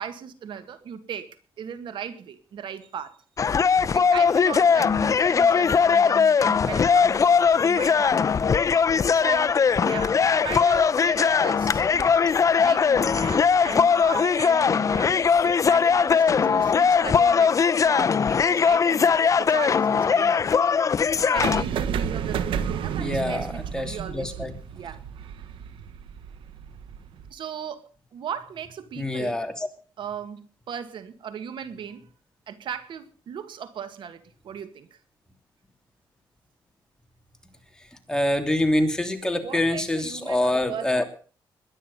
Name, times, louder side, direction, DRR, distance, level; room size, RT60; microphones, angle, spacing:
voice 1, 0.0-3.2 3.6-7.3 7.6-8.6 9.1-12.2 12.6-20.5 21.1-25.0 27.3-29.4 30.0-32.0 32.5-35.0 39.4-41.0, right 8 dB, 70° right, 1.8 m, -37 dB
sound 1, 3.4-21.6, left 6 dB, 40° left, 0.7 m, -20 dB
sound 2, 21.4-27.3, right 8 dB, 90° right, 1.4 m, -31 dB
voice 2, 23.0-24.5 29.0-29.7 38.1-41.0, left 1 dB, 10° left, 3.0 m, -25 dB
21.5 x 10.0 x 5.5 m
cardioid pair, 110°, 9 cm